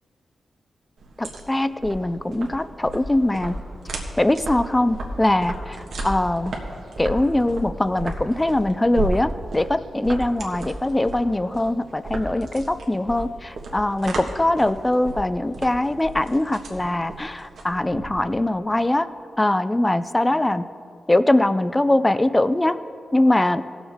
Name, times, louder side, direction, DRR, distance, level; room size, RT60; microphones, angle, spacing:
sound 1, 1.0-18.5, right 2 dB, 80° right, 1.4 m, -34 dB
voice 1, 1.2-3.6 4.2-6.5 7.0-19.1 19.4-20.7 21.1-22.8 23.1-23.6, left 1 dB, 15° left, 14 dB, 0.4 m, -22 dB
17.0 x 7.1 x 3.6 m, 2.6 s
wide cardioid pair, 100°, 0 cm